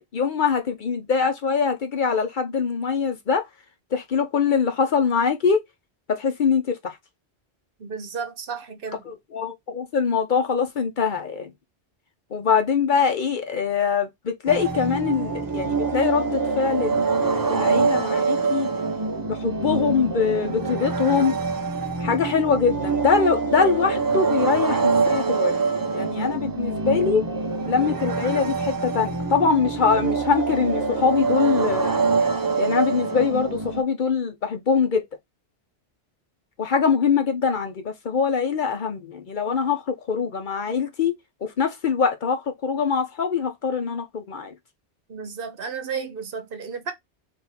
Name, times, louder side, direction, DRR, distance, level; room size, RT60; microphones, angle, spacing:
voice 1, 0.0-3.4 3.9-5.6 6.1-7.0 9.0-11.5 12.3-18.7 19.2-21.3 22.0-25.5 25.9-27.2 27.7-32.0 32.6-35.0 36.6-44.5, left 6 dB, 55° left, 0.7 m, -23 dB
voice 2, 7.8-9.0 45.1-46.9, right 5 dB, 60° right, 0.9 m, -33 dB
sound 1, 14.5-33.8, right 4 dB, 30° right, 0.4 m, -25 dB
3.5 x 2.6 x 4.0 m
omnidirectional pair, 1.1 m